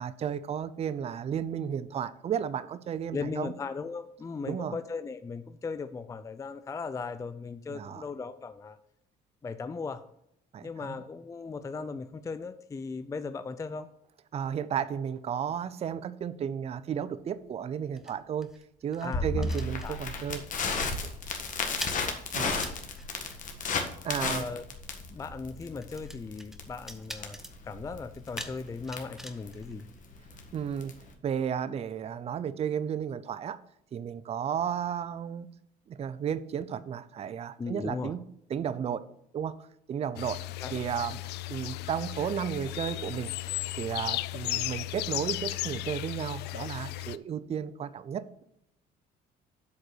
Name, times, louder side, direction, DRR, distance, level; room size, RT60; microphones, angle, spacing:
voice 1, 0.0-3.5 4.5-4.7 7.7-8.0 10.5-11.0 14.3-18.5 18.8-20.4 21.0-21.1 22.3-22.6 24.0-24.5 30.5-30.9 31.2-33.6 33.9-35.5 35.9-38.2 38.5-39.0 39.3-39.6 39.9-40.4 40.7-41.2 41.5-43.3 43.8-48.4, right 8 dB, 35° right, 15 dB, 0.5 m, -33 dB
voice 2, 3.1-8.8 9.4-10.0 10.6-13.9 19.0-19.4 19.8-20.0 24.2-24.6 25.1-27.4 27.6-29.9 37.6-38.1 40.6-40.7, left 4 dB, 20° left, 11 dB, 0.4 m, -37 dB
sound 1, 17.2-20.4 20.6-20.9 21.1-30.5, equal, ahead, 1.0 m, -47 dB
Crackle, 19.1-31.1, left 4 dB, 50° left, 1.7 m, -34 dB
sound 2, 40.2-47.2, left 17 dB, 80° left, 0.4 m, -35 dB
8.3 x 5.2 x 6.3 m, 0.77 s
cardioid pair, 110°, 17 cm